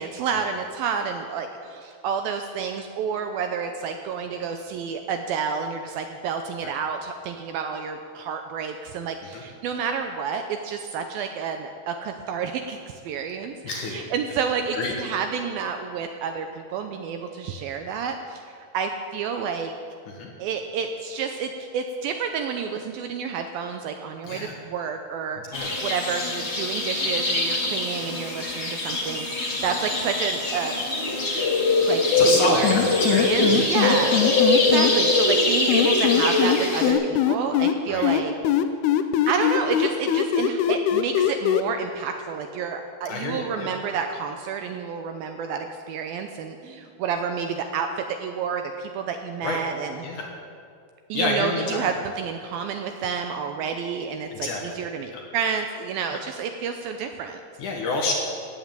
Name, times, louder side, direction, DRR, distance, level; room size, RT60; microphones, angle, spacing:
voice 1, 0.0-19.7 20.4-30.8 31.9-32.8 33.0-34.1 34.5-38.3 39.3-47.9 48.2-50.0 51.1-57.4, right 6 dB, 80° right, 6 dB, 2.2 m, -30 dB
voice 2, 13.6-14.1 14.7-14.9 20.1-20.3 24.2-24.6 25.5-25.8 29.6-29.7 32.2-33.7 34.0-34.2 37.9-38.0 43.1-43.7 49.4-49.6 50.0-50.3 51.1-51.9 54.3-54.8 55.1-55.2 57.6-58.1, left 3 dB, 60° left, 0 dB, 2.4 m, -28 dB
sound 1, 25.5-36.9, left 2 dB, 40° left, 0.9 m, -23 dB
sound 2, 32.6-34.9 35.7-37.7 38.0-41.6, left 11 dB, 80° left, 2.6 m, -21 dB
15.0 x 8.5 x 9.0 m, 2.3 s
omnidirectional pair, 4.8 m